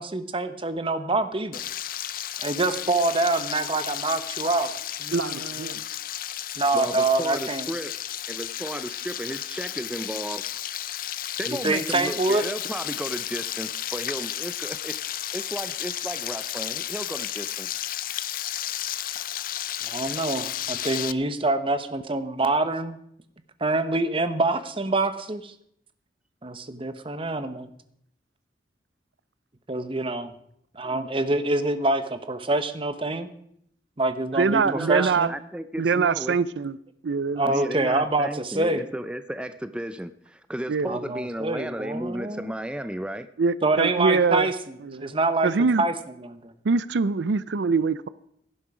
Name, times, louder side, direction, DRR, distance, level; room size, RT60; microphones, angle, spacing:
voice 1, 0.0-1.6 2.4-4.7 5.0-5.8 6.6-7.7 11.5-12.4 19.8-23.0 23.6-25.5 26.4-27.7 29.7-30.3 30.7-33.3 34.0-34.6 34.9-35.3 37.4-38.8 40.9-42.5 43.6-44.5 45.0-45.5 45.8-45.9 46.2-46.5, right 2 dB, 30° right, 1.0 m, -26 dB
Frying (food), 1.5-21.1, left 12 dB, 55° left, 0.5 m, -33 dB
voice 2, 5.1-5.8 30.9-31.1 34.3-35.3 35.8-36.8 37.0-37.5 40.7-40.9 43.4-44.5 44.8-45.1 45.4-45.8 46.6-48.1, right 4 dB, 85° right, 0.5 m, -24 dB
voice 3, 6.7-8.0 8.3-10.4 11.4-15.0 15.3-17.7 34.6-36.4 37.4-43.3, right 1 dB, 5° right, 0.5 m, -34 dB
17.0 x 11.0 x 5.0 m
head